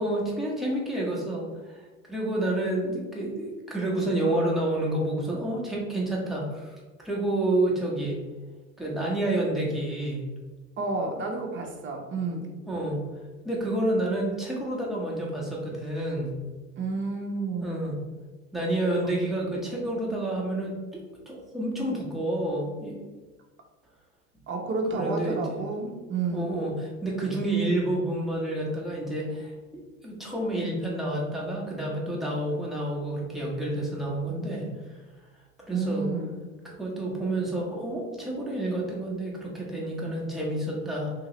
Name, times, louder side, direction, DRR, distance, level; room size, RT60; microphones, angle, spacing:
voice 1, 0.0-6.8 7.0-8.2 8.8-10.2 12.7-13.1 13.4-16.3 17.6-18.0 18.5-23.0 24.9-25.6 26.3-34.7 35.7-36.1 36.6-41.1, right 1 dB, ahead, -4 dB, 0.9 m, -29 dB
voice 2, 10.8-12.5 16.8-17.8 24.5-26.5 35.7-36.3, right 3 dB, 30° right, 1 dB, 0.8 m, -30 dB
2.9 x 2.9 x 2.9 m, 1.3 s
hypercardioid pair, 85°, 40 cm